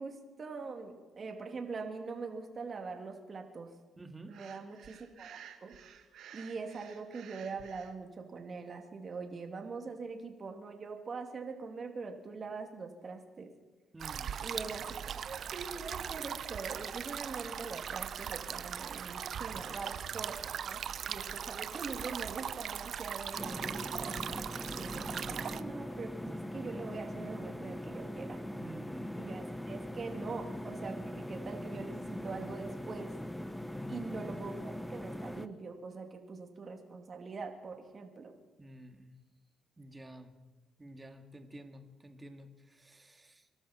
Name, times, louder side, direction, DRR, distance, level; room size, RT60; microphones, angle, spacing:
voice 1, 0.0-3.7 4.3-5.8 6.3-13.5 14.4-20.4 20.6-24.2 24.7-28.4 29.2-33.1 33.9-38.3, right 4 dB, 40° right, 3 dB, 2.6 m, -43 dB
voice 2, 4.0-4.4 13.9-14.4 19.6-19.8 28.5-29.2 33.7-34.3 38.6-39.2 39.8-40.3 40.8-43.5, right 1 dB, 20° right, 5 dB, 2.0 m, -50 dB
Breathing, 4.3-7.9, right 9 dB, 75° right, 1.4 m, -53 dB
sound 1, 14.0-25.6, right 8 dB, 60° right, 0.6 m, -39 dB
sound 2, 23.4-35.5, left 1 dB, 5° left, 0.9 m, -41 dB
25.0 x 12.5 x 4.4 m, 1.3 s
cardioid pair, 90°, 0 cm